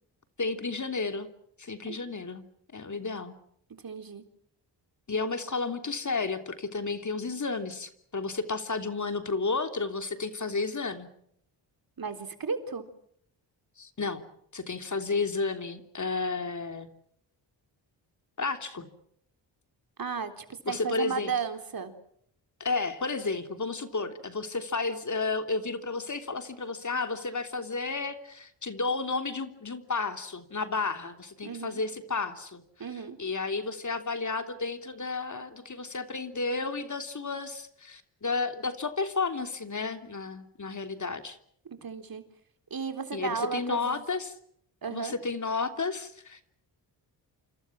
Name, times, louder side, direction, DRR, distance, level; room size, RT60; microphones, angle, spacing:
voice 1, 0.4-1.3 1.6-2.4 2.7-3.3 5.1-11.1 13.8-14.2 14.5-16.9 18.4-18.9 20.6-21.3 22.6-32.6 33.2-41.4 43.1-44.3 44.9-46.4, left 4 dB, 40° left, 7 dB, 3.2 m, -32 dB
voice 2, 3.8-4.2 12.0-12.8 20.0-21.9 31.4-31.8 32.8-33.2 41.7-42.2 42.7-44.0 44.8-45.1, right 5 dB, 50° right, 7 dB, 3.9 m, -34 dB
28.0 x 26.5 x 6.2 m, 0.69 s
cardioid pair, 60°, 46 cm